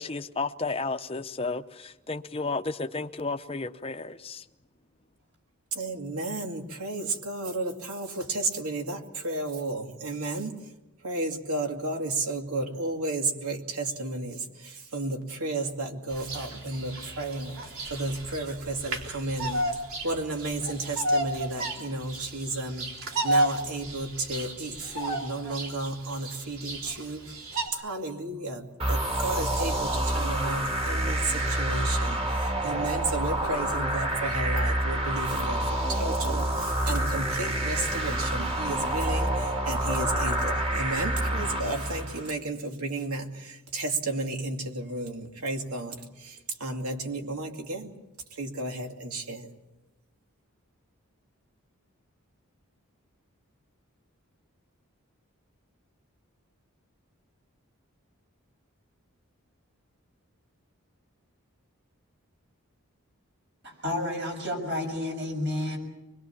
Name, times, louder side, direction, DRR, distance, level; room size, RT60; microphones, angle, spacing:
voice 1, 0.0-4.4, left 3 dB, 25° left, 0.8 m, -32 dB
voice 2, 5.7-10.7 11.0-22.9 23.2-27.4 27.7-47.9 48.3-49.5, right 2 dB, 85° right, 2.6 m, -33 dB
Bird vocalization bird call bird song, 16.1-27.7, right 1 dB, 70° right, 3.6 m, -33 dB
sound 1, 28.8-42.3, right 1 dB, 25° right, 2.3 m, -28 dB
voice 3, 63.6-65.8, left 1 dB, 50° right, 6.6 m, -31 dB
25.0 x 21.5 x 7.3 m
head